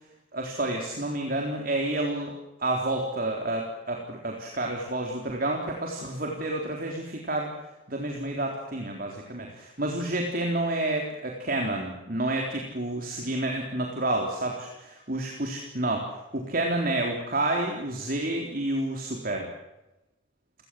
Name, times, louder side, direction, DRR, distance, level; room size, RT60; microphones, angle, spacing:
voice 1, 0.3-2.3 2.6-7.5 7.9-14.7 15.1-19.5, right 1 dB, 45° right, 1 dB, 3.9 m, -29 dB
29.0 x 19.0 x 7.8 m, 0.97 s
head